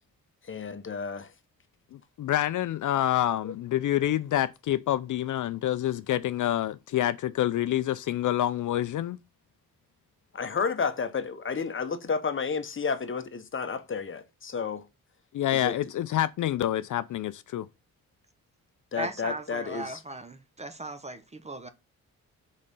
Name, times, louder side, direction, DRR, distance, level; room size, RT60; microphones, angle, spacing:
voice 1, 0.5-1.3 3.4-3.5 10.3-14.8 15.5-15.7 18.9-20.0, left 5 dB, 40° left, 0.9 m, -31 dB
voice 2, 1.9-9.2 15.3-17.7, left 12 dB, 65° left, 0.4 m, -27 dB
voice 3, 18.9-21.7, right 2 dB, 20° right, 0.7 m, -38 dB
5.3 x 4.1 x 5.3 m
cardioid pair, 100°, 33 cm